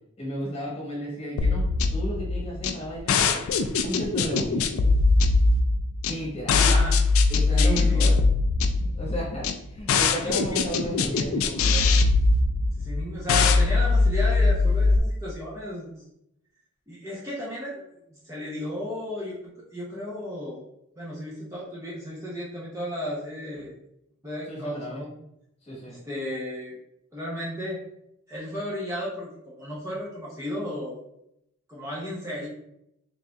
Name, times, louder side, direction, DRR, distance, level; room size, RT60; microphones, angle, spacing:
voice 1, 0.2-3.4 3.8-4.7 6.1-6.8 7.3-8.2 8.8-11.9 24.5-25.0 25.6-25.9, equal, 30° left, -5 dB, 1.2 m, -33 dB
sound 1, 1.4-15.0, left 3 dB, 70° left, 0.3 m, -22 dB
voice 2, 6.6-6.9 7.6-8.0 10.2-10.6 12.8-16.1 16.9-17.8 18.1-20.6 21.0-23.8 24.2-25.1 25.9-26.8 27.1-27.8 28.3-31.0 31.7-32.5, equal, 15° right, -6 dB, 0.7 m, -34 dB
4.0 x 3.6 x 2.3 m, 0.80 s
head